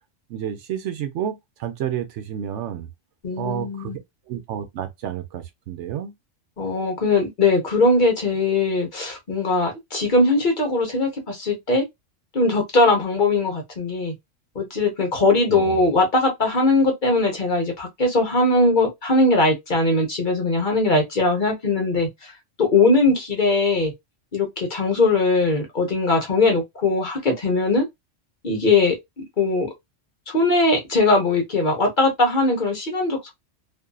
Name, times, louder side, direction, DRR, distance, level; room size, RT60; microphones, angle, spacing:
voice 1, 0.3-2.9 3.4-4.0 4.3-6.1 15.5-15.8, right 10 dB, 75° right, 0.9 m, -30 dB
voice 2, 3.2-4.0 6.6-11.8 12.3-14.1 14.5-22.3 22.6-23.9 24.3-27.8 28.4-29.0 29.4-29.7 30.3-33.3, left 2 dB, 45° left, 0.9 m, -20 dB
2.6 x 2.5 x 2.2 m
omnidirectional pair, 1.3 m